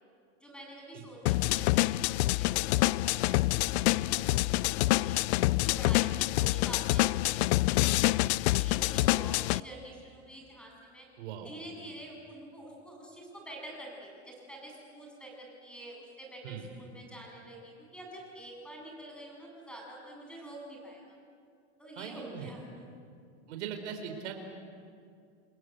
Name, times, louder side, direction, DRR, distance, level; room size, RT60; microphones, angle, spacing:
voice 1, 0.4-5.2 5.6-11.1 11.4-21.2 21.8-23.1, right 1 dB, 5° left, -1 dB, 7.8 m, -47 dB
sound 1, 1.3-9.6, left 19 dB, 65° left, 0.5 m, -27 dB
voice 2, 11.2-11.5 16.4-16.7 22.0-22.5 23.5-24.3, right 8 dB, 75° right, 5 dB, 4.4 m, -40 dB
29.5 x 21.0 x 8.2 m, 2.3 s
supercardioid pair, 135°, 34 cm